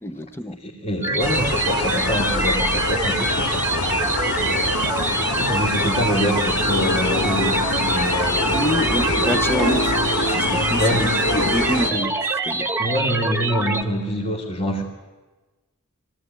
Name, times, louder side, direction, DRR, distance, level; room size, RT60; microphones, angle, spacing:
voice 1, 0.0-0.6 8.5-10.0 10.3-11.0 11.3-12.7, equal, 10° left, 10 dB, 0.8 m, -26 dB
voice 2, 0.6-8.6 9.0-9.1 10.8-11.2 11.9-12.0 12.8-14.8, equal, 35° left, -5 dB, 2.7 m, -26 dB
sound 1, 1.0-13.8, right 2 dB, 10° right, 1.4 m, -25 dB
sound 2, 1.2-11.9, left 2 dB, 90° left, 1.9 m, -25 dB
23.0 x 17.0 x 9.5 m, 1.2 s
head